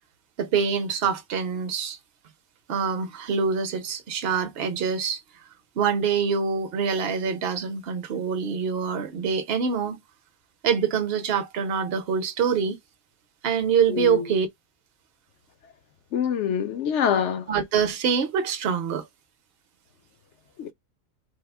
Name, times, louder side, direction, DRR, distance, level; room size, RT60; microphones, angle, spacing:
voice 1, 0.4-2.0 2.7-5.2 5.8-10.0 10.6-12.8 13.4-14.5 17.5-19.0, right 6 dB, 55° right, 0.8 m, -25 dB
voice 2, 13.9-14.3 16.1-17.4 20.6-20.7, left 8 dB, 65° left, 0.8 m, -25 dB
3.5 x 2.0 x 3.3 m
omnidirectional pair, 1.4 m